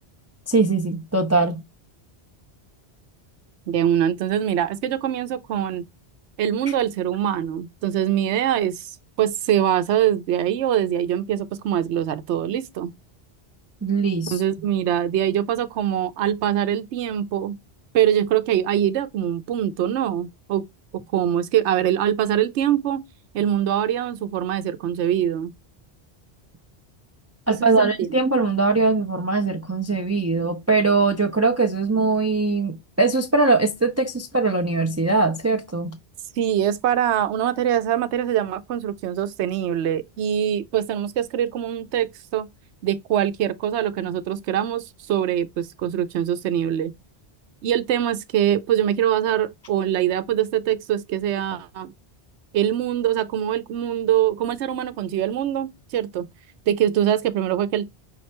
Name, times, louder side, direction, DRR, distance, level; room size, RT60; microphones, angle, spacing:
voice 1, 0.5-1.6 13.8-14.4 27.5-36.0, right 3 dB, 25° right, 0.4 m, -21 dB
voice 2, 3.7-5.8 6.4-12.9 14.3-17.6 17.9-20.7 20.9-23.0 23.3-25.5 27.5-28.1 36.4-42.5 42.8-46.9 47.6-51.9 52.5-56.3 56.7-57.9, right 10 dB, 85° right, 0.9 m, -23 dB
5.6 x 3.2 x 2.9 m
omnidirectional pair, 1.1 m